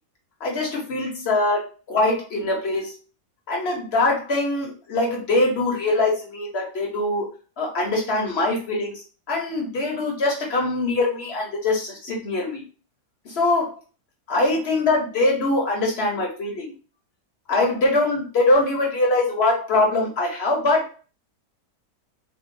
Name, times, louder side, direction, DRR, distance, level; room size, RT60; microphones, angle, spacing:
voice 1, 0.4-3.0 3.5-7.3 7.6-9.0 9.3-12.6 13.2-13.7 14.3-16.7 17.5-20.8, left 2 dB, 50° left, -1 dB, 0.9 m, -23 dB
3.6 x 2.2 x 2.6 m, 0.37 s
omnidirectional pair, 1.7 m